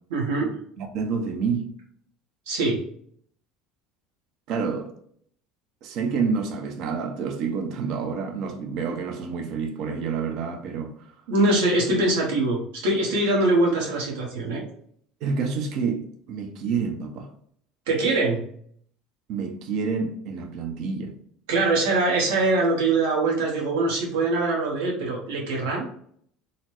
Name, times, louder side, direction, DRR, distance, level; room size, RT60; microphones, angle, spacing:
voice 1, 0.1-0.5 2.5-2.8 11.3-14.6 17.9-18.4 21.5-25.8, right 2 dB, 80° right, 1.0 m, -23 dB
voice 2, 0.8-1.7 4.5-4.9 5.8-10.9 15.2-17.3 19.3-21.1, right 5 dB, 60° right, 0.6 m, -28 dB
3.9 x 2.1 x 3.0 m
hypercardioid pair, 80°, 0 cm